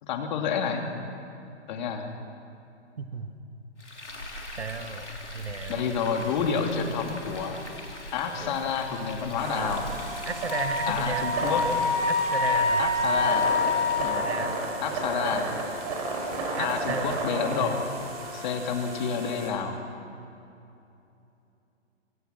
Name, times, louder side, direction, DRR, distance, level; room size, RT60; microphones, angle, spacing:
voice 1, 0.0-0.8 1.7-2.1 5.7-7.6 8.1-9.9 10.9-11.6 12.8-13.5 14.0-14.2 14.8-15.5 16.6-17.8 18.3-19.8, left 6 dB, 40° left, 3 dB, 3.0 m, -29 dB
voice 2, 3.0-3.3 4.6-5.1 5.3-5.9 8.3-8.6 10.3-11.3 12.1-12.8 14.0-14.6 16.6-17.3 17.6-17.8, right 5 dB, 65° right, 8 dB, 1.9 m, -34 dB
Frying (food), 3.8-14.2, left 1 dB, 80° left, 3.8 m, -41 dB
sound 1, 9.4-19.5, right 2 dB, 35° right, 5.6 m, -33 dB
Wind instrument woodwind instrument, 10.5-14.3, left 3 dB, 15° left, 7.8 m, -26 dB
26.0 x 24.5 x 6.0 m, 2.7 s
figure-of-eight pair, 125°, 35 cm